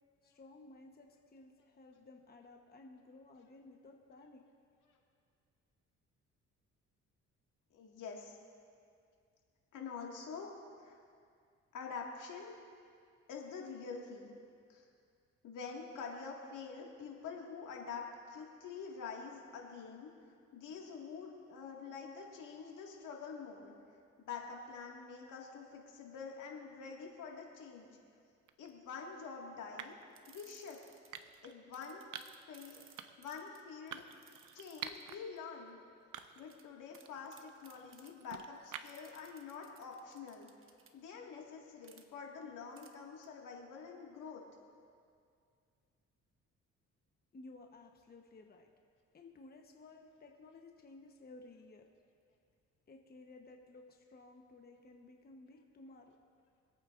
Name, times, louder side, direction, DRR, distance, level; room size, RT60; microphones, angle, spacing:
voice 1, 0.2-4.4 47.3-48.7 49.1-51.9 52.9-56.2, left 2 dB, 30° left, 2 dB, 1.1 m, -56 dB
voice 2, 7.7-8.4 9.7-10.5 10.8-11.0 11.7-12.5 13.3-14.4 14.7-14.8 15.4-20.1 20.5-23.7 24.2-27.9 28.6-30.0 30.3-30.8 31.4-32.0 32.5-34.0 34.5-35.8 36.4-40.5 40.9-44.4, left 5 dB, 80° left, -1 dB, 2.0 m, -46 dB
sound 1, 28.5-28.7 29.8-30.1 31.1-31.6 32.1-32.5 33.0-33.3 33.9-35.2 35.6-35.7 36.1-36.6 37.0-39.2, right 9 dB, 80° right, 0.7 m, -48 dB
sound 2, 30.1-31.4 31.7-35.4 36.5-36.6 36.9-37.1 37.3-38.3 38.7-40.9 41.8-42.0 42.8-42.9 43.2-43.3, right 6 dB, 45° right, 1.1 m, -61 dB
25.5 x 8.9 x 2.6 m, 2.3 s
cardioid pair, 90°, 30 cm